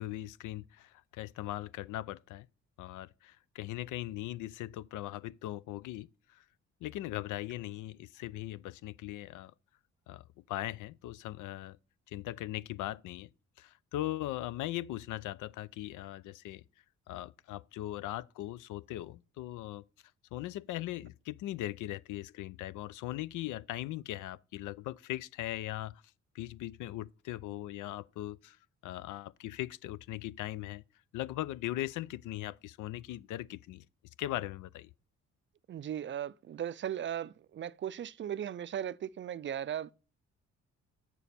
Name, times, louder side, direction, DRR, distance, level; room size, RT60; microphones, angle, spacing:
voice 1, 0.0-2.5 2.8-6.4 6.8-9.5 10.1-11.8 12.1-13.3 13.6-16.6 17.1-19.8 20.3-26.0 26.3-28.6 28.8-30.8 31.1-33.8 34.2-34.9, left 15 dB, 85° left, 0.5 m, -39 dB
voice 2, 35.7-39.9, right 10 dB, 40° right, 0.4 m, -37 dB
8.2 x 7.0 x 4.2 m
cardioid pair, 90°, 30 cm